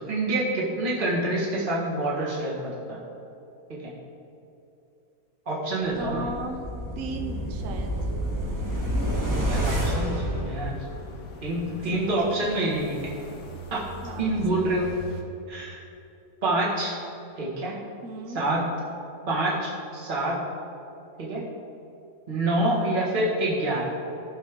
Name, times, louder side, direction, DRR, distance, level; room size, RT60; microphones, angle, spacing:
voice 1, 0.0-3.0 3.7-3.9 5.4-6.3 9.5-10.8 11.4-13.1 13.7-13.8 14.2-14.9 15.5-15.8 16.4-16.9 17.4-17.8 18.3-18.7 19.3-20.4 21.2-21.5 22.3-23.9, right 1 dB, 35° right, -5 dB, 1.8 m, -27 dB
sound 1, 6.0-11.2 11.6-11.7, right 1 dB, 15° right, 1.3 m, -29 dB
voice 2, 6.0-6.6 7.0-8.1 11.9-12.5 14.0-14.6 18.0-18.4 22.7-23.0, right 3 dB, 65° right, 3 dB, 1.1 m, -37 dB
sound 2, 8.7-15.2, left 1 dB, 85° left, 1.5 m, -42 dB
15.5 x 5.6 x 3.6 m, 2.8 s
omnidirectional pair, 1.6 m